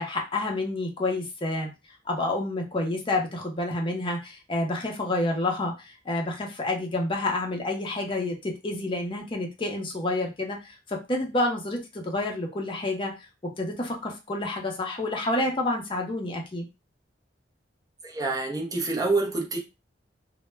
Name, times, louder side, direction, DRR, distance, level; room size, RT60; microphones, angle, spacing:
voice 1, 0.0-1.7 2.1-13.3 13.6-16.7, left 2 dB, 30° left, 0.6 m, -29 dB
voice 2, 18.0-19.6, right 3 dB, 20° right, 0.5 m, -27 dB
2.1 x 2.0 x 3.2 m
head